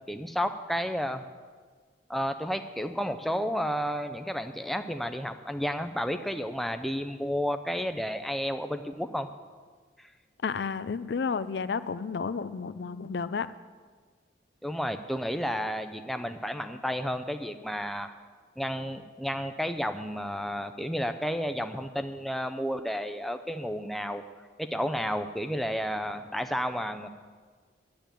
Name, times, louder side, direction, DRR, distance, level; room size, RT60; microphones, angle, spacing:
voice 1, 0.1-1.2 2.1-9.3 10.0-10.1 14.6-18.1 18.6-24.2 24.6-27.1, equal, ahead, 8 dB, 0.5 m, -31 dB
voice 2, 10.4-13.5, left 5 dB, 60° left, 14 dB, 0.4 m, -31 dB
10.5 x 8.5 x 9.0 m, 1.5 s
head